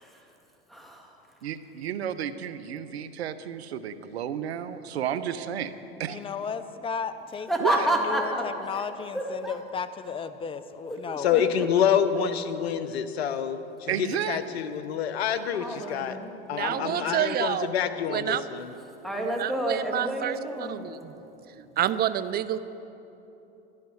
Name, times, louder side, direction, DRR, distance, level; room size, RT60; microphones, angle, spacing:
voice 1, 0.0-1.5 7.4-8.9 9.1-9.6 10.9-11.7 12.9-13.0 15.3-17.1 19.0-20.8, right 1 dB, ahead, 0 dB, 2.1 m, -31 dB
voice 2, 1.4-5.7 6.0-6.2 7.6-7.7 13.9-14.4 16.8-16.9, right 10 dB, 85° right, 13 dB, 0.8 m, -32 dB
voice 3, 6.1-11.3, left 6 dB, 15° left, 12 dB, 0.6 m, -34 dB
voice 4, 11.2-15.6 15.9-16.2 16.5-18.7, left 8 dB, 80° left, 11 dB, 0.9 m, -27 dB
voice 5, 16.5-17.7 18.1-18.4 19.4-20.3 20.7-20.9 21.6-22.6, right 11 dB, 30° right, 13 dB, 0.6 m, -28 dB
12.0 x 11.5 x 6.3 m, 3.0 s
hypercardioid pair, 95°, 31 cm